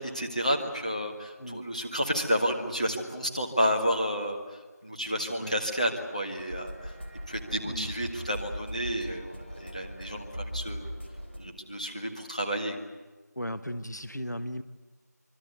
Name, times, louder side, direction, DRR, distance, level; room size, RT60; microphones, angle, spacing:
voice 1, 0.0-6.9 7.3-10.9 11.4-12.8, equal, 25° left, 2 dB, 1.6 m, -31 dB
sound 1, 6.4-11.4, equal, 40° left, 3.4 m, -40 dB
voice 2, 13.3-14.6, equal, 75° left, 11 dB, 1.3 m, -36 dB
25.0 x 24.0 x 8.1 m, 1.3 s
figure-of-eight pair, 180°, 10 cm